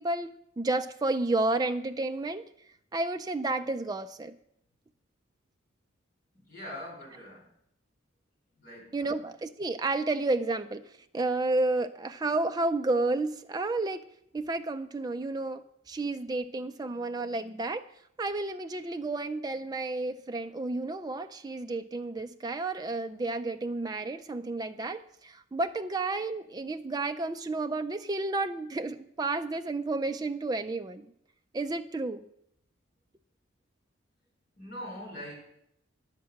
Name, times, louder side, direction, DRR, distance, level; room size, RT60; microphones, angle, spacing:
voice 1, 0.0-2.4 2.9-4.3 8.9-10.8 11.1-14.0 14.3-17.8 18.2-31.1 31.5-32.2, right 2 dB, 20° right, 0.3 m, -31 dB
voice 2, 6.3-7.4 8.6-9.2 34.6-35.3, equal, 45° left, 4.9 m, -43 dB
10.5 x 7.4 x 5.8 m
head